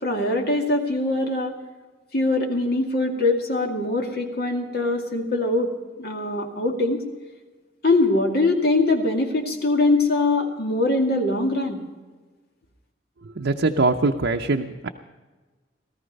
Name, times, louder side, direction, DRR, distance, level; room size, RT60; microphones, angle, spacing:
voice 1, 0.0-1.5 2.1-5.7 6.0-7.0 7.8-11.8, left 2 dB, 55° left, 2 dB, 2.2 m, -22 dB
voice 2, 13.4-14.9, right 3 dB, 75° right, 3 dB, 0.7 m, -22 dB
18.0 x 14.0 x 5.3 m, 1.3 s
head